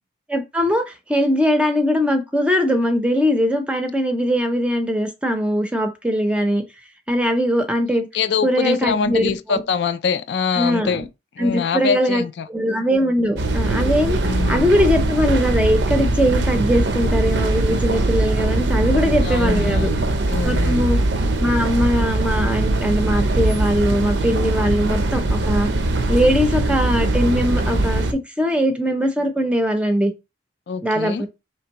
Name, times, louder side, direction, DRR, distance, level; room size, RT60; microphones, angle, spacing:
voice 1, 0.3-6.6 7.1-8.1 8.4-9.6 10.5-11.0 11.4-12.2 12.5-14.2 14.5-19.9 20.4-21.0 21.4-25.7 26.1-30.1 30.8-31.3, equal, 5° right, 0.5 m, -20 dB
voice 2, 8.1-11.0 11.4-12.5 14.2-14.7 19.2-20.9 30.7-31.2, left 6 dB, 60° left, 0.3 m, -24 dB
sound 1, 13.4-28.1, right 2 dB, 65° right, 0.5 m, -21 dB
4.4 x 3.3 x 2.8 m
head